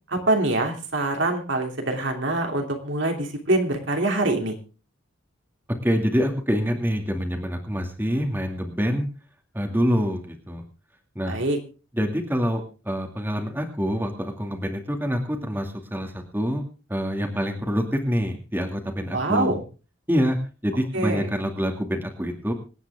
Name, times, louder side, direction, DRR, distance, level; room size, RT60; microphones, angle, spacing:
voice 1, 0.1-4.6 11.2-11.6 19.1-19.6 20.9-21.3, right 2 dB, 60° right, 3 dB, 3.0 m, -24 dB
voice 2, 5.8-9.0 9.5-10.6 11.2-11.4 11.9-16.6 16.9-19.6 20.1-20.4 20.6-22.5, equal, 10° right, 3 dB, 2.3 m, -26 dB
26.0 x 9.5 x 3.6 m, 0.35 s
head